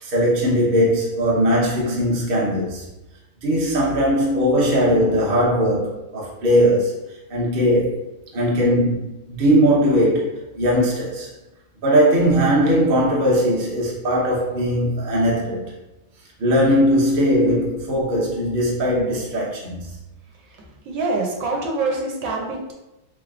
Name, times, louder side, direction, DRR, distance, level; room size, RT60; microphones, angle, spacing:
voice 1, 0.0-2.9 3.4-8.0 8.3-11.3 11.8-15.7 16.4-20.0, equal, 50° right, -5 dB, 0.7 m, -19 dB
voice 2, 20.5-22.7, right 3 dB, 75° right, -1 dB, 1.4 m, -25 dB
3.6 x 3.6 x 2.3 m, 0.99 s
omnidirectional pair, 2.3 m